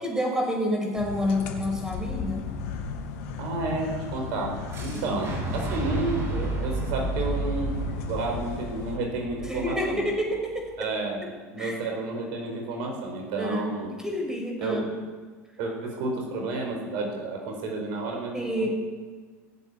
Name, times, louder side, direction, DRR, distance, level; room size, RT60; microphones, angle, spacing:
voice 1, 0.0-2.5 4.9-5.2 9.5-10.9 11.6-11.8 13.4-14.9 18.3-18.7, equal, 5° right, 1 dB, 5.6 m, -29 dB
sound 1, 0.9-9.0, left 6 dB, 70° left, 2.1 m, -36 dB
voice 2, 3.4-4.5 4.8-7.8 8.1-10.1 10.8-11.2 11.5-13.9 14.6-14.9 15.6-18.7, right 2 dB, 65° right, 1 dB, 4.6 m, -31 dB
Fire / Explosion, 4.7-10.6, right 3 dB, 30° right, 7.1 m, -32 dB
18.0 x 8.1 x 9.7 m, 1.4 s
hypercardioid pair, 95°, 8 cm